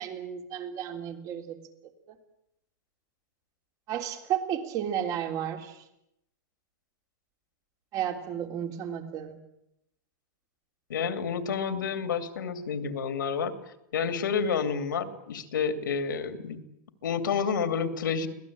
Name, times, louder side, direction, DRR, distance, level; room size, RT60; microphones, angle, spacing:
voice 1, 0.0-1.6 3.9-5.8 7.9-9.4, right 9 dB, 35° right, 5 dB, 3.3 m, -32 dB
voice 2, 10.9-13.5 13.9-16.6 17.0-18.3, left 6 dB, 85° left, 8 dB, 2.9 m, -29 dB
24.5 x 18.0 x 8.7 m, 0.79 s
hypercardioid pair, 135°, 10 cm